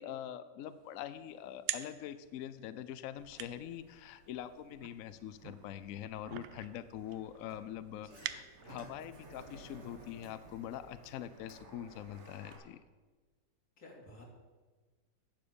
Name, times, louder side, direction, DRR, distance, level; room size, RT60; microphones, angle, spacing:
voice 1, 0.0-12.8, left 10 dB, 75° left, 13 dB, 0.7 m, -44 dB
sound 1, 0.7-9.0, right 12 dB, 85° right, 1.3 m, -47 dB
Sliding door, 3.2-12.6, right 2 dB, 40° right, 1.6 m, -57 dB
voice 2, 7.9-8.3 13.8-14.2, left 2 dB, 55° left, -2 dB, 3.1 m, -54 dB
11.0 x 7.2 x 6.9 m, 1.3 s
omnidirectional pair, 2.0 m